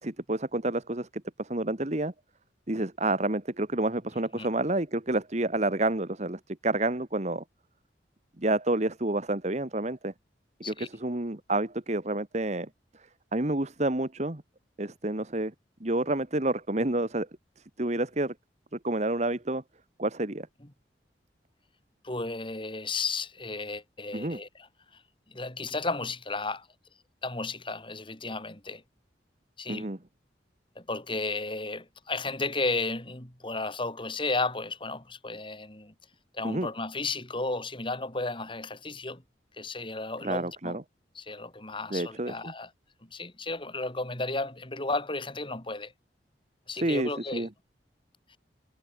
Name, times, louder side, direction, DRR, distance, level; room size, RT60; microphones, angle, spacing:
voice 1, 0.0-1.1 1.4-2.1 2.7-7.4 8.4-10.1 10.7-12.7 13.3-14.4 14.8-15.5 15.8-17.3 17.8-18.3 18.7-19.6 20.0-20.5 24.1-24.4 29.7-30.0 36.4-36.7 40.2-40.8 41.9-42.5 46.7-47.5, right 2 dB, 40° right, 1.6 m, -29 dB
voice 2, 22.0-24.7 24.9-25.0 25.3-26.7 27.2-28.8 29.6-29.9 30.7-35.9 36.3-39.2 39.6-40.8 41.1-42.7 43.1-45.9 46.7-47.5, left 3 dB, 30° left, 3.3 m, -33 dB
head